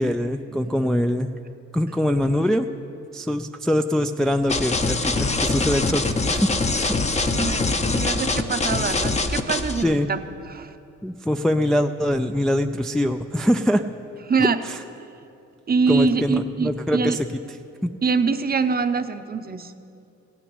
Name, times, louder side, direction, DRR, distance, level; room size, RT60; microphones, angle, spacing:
voice 1, 0.0-1.3 1.7-2.7 3.1-7.3 9.8-10.1 11.0-13.8 14.7-14.8 15.9-17.3 17.8-17.9, equal, ahead, 5 dB, 0.3 m, -23 dB
sound 1, 4.5-9.8, left 3 dB, 20° left, 0.8 m, -23 dB
voice 2, 7.3-10.7 14.3-14.6 15.7-17.2 18.0-19.7, right 5 dB, 30° right, 9 dB, 0.7 m, -24 dB
15.5 x 6.0 x 9.6 m, 2.7 s
cardioid pair, 90°, 30 cm